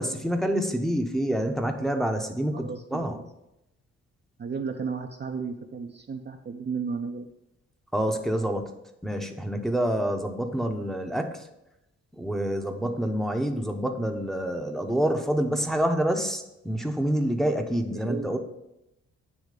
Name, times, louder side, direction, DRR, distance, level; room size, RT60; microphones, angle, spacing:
voice 1, 0.0-3.2 7.9-8.7 9.0-11.5 12.2-18.4, right 1 dB, ahead, 4 dB, 0.8 m, -27 dB
voice 2, 2.5-3.2 4.4-7.3 17.9-18.4, right 5 dB, 30° right, 4 dB, 0.6 m, -34 dB
8.3 x 3.1 x 4.9 m, 0.87 s
hypercardioid pair, 45°, 34 cm